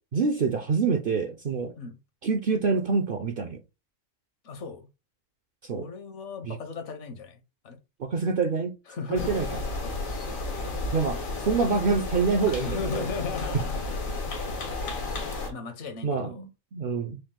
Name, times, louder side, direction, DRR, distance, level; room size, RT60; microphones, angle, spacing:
voice 1, 0.1-1.7 2.2-3.6 5.6-5.9 6.5-6.6 8.0-8.8 9.1-9.5 10.9-13.0 16.0-17.2, right 4 dB, 60° right, 0.6 m, -26 dB
voice 2, 4.4-4.9 5.7-7.8 8.9-9.6 12.4-14.3 15.5-16.4, left 5 dB, 65° left, 1.1 m, -37 dB
sound 1, 9.2-15.5, left 2 dB, 85° left, 1.5 m, -32 dB
5.1 x 2.3 x 3.7 m
omnidirectional pair, 1.4 m